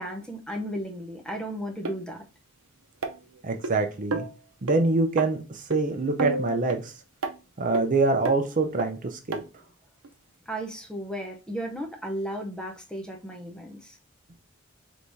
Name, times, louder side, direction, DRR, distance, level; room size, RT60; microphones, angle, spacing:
voice 1, 0.0-2.2 10.5-13.9, equal, 5° left, 0.7 m, -34 dB
sound 1, 1.8-1.9 3.0-3.7 4.1-4.3 4.7-4.8 5.2-5.3 5.7-5.8 6.2-6.8 7.2-7.3 7.7-7.8 8.2-8.4 8.8-8.9 9.3-9.4 10.0-10.1, right 2 dB, 90° right, 0.7 m, -30 dB
voice 2, 3.4-4.2 4.6-6.9 7.6-9.4, right 3 dB, 40° right, 0.6 m, -25 dB
4.7 x 3.5 x 2.7 m
head